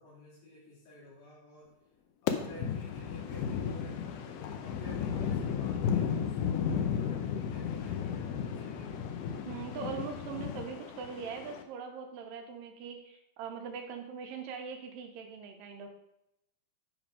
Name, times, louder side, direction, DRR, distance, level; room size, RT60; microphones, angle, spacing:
voice 1, 0.0-1.7 2.2-9.0, left 1 dB, 70° left, -12 dB, 4.3 m, -51 dB
sound 1, 2.3-11.6, left 7 dB, 85° left, 1.8 m, -34 dB
voice 2, 9.5-15.9, right 6 dB, 75° right, 3 dB, 2.3 m, -41 dB
9.7 x 3.5 x 5.0 m, 0.83 s
omnidirectional pair, 4.6 m